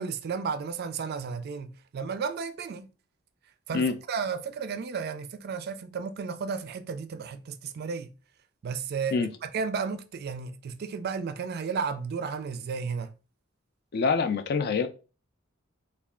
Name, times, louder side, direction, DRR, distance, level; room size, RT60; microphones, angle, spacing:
voice 1, 0.0-2.9 3.7-8.1 8.6-9.2 9.4-13.1, right 5 dB, 50° right, 0.4 m, -33 dB
voice 2, 13.9-14.9, left 5 dB, 50° left, 0.4 m, -25 dB
3.3 x 2.3 x 3.6 m
head